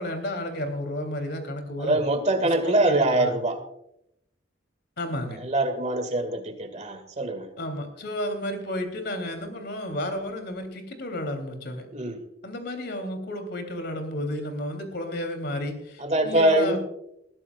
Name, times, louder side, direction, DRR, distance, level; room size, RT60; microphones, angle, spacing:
voice 1, 0.0-2.0 2.4-3.4 5.0-5.4 7.6-11.8 12.4-16.8, left 1 dB, 65° left, 6 dB, 3.2 m, -32 dB
voice 2, 1.8-3.6 5.4-7.5 11.9-12.2 16.0-16.8, right 1 dB, 40° right, 7 dB, 2.1 m, -23 dB
21.0 x 14.5 x 2.4 m, 0.80 s
head